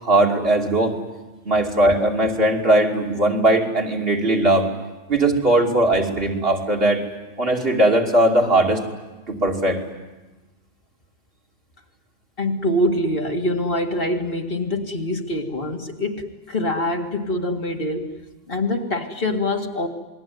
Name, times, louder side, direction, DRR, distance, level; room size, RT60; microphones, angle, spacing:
voice 1, 0.0-0.9 1.4-4.7 5.1-7.0 7.4-8.9 9.3-9.8, right 1 dB, 55° right, 0 dB, 3.1 m, -19 dB
voice 2, 12.4-18.1 18.5-19.9, left 1 dB, 55° left, 2 dB, 2.2 m, -24 dB
27.5 x 20.5 x 9.4 m, 1.1 s
omnidirectional pair, 1.2 m